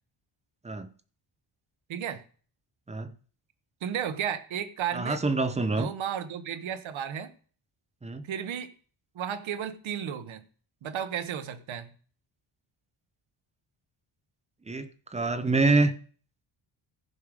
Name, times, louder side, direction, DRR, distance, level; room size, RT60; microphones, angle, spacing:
voice 1, 1.9-2.2 3.8-5.2 5.7-7.3 8.2-8.7 9.1-10.4 10.8-11.9, right 9 dB, 80° right, 1.0 m, -33 dB
voice 2, 4.9-5.9 8.0-8.3 14.7-16.0, right 3 dB, 15° right, 0.5 m, -26 dB
15.0 x 5.0 x 4.8 m
wide cardioid pair, 165°, 47 cm